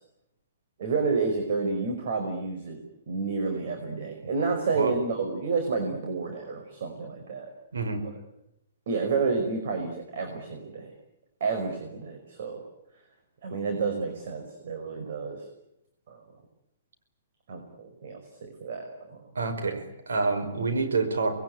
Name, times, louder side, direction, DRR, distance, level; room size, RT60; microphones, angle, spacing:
voice 1, 0.8-2.8 3.1-7.5 8.9-10.9 11.4-12.6 13.4-15.5 16.1-16.2 17.5-19.2, right 4 dB, 60° right, 4 dB, 5.3 m, -30 dB
voice 2, 19.3-21.4, right 4 dB, 85° right, 6 dB, 5.2 m, -27 dB
26.5 x 21.5 x 9.5 m, 0.86 s
hypercardioid pair, 130°, 0 cm